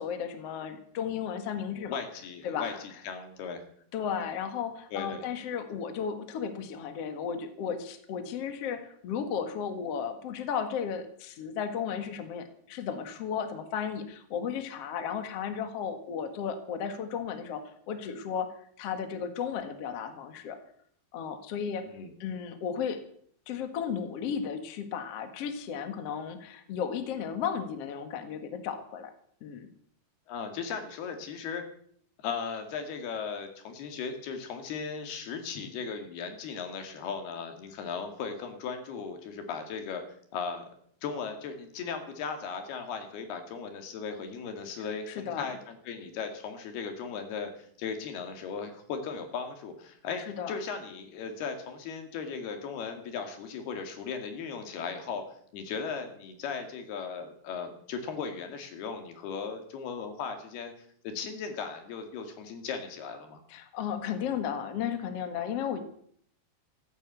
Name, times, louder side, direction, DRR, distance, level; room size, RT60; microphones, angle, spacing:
voice 1, 0.0-2.0 2.4-2.8 3.9-18.5 18.8-20.6 21.1-21.8 22.2-23.0 23.5-29.1 29.4-29.7 45.1-45.5 50.3-50.6 63.5-65.8, left 7 dB, 50° left, 8 dB, 2.0 m, -34 dB
voice 2, 1.8-3.6 4.9-5.3 21.8-22.1 30.3-31.6 32.2-40.0 40.3-40.7 41.0-50.2 50.5-55.2 55.5-60.7 61.0-63.4, left 5 dB, 70° left, 6 dB, 4.1 m, -37 dB
15.0 x 11.0 x 8.2 m, 0.64 s
omnidirectional pair, 4.7 m